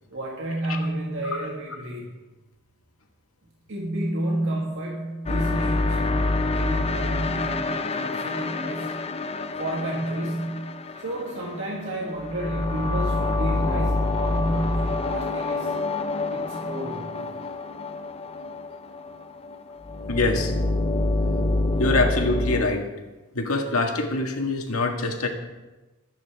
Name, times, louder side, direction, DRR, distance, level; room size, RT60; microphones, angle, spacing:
voice 1, 0.1-2.1 3.7-9.0 9.6-15.8 16.3-17.2, right 1 dB, 65° right, -2 dB, 1.8 m, -31 dB
sound 1, 5.3-22.7, left 2 dB, 30° left, 0.6 m, -27 dB
voice 2, 20.1-20.5 21.8-22.8 23.4-25.3, left 2 dB, 85° left, 3 dB, 1.8 m, -24 dB
22.0 x 9.4 x 3.5 m, 1.1 s
head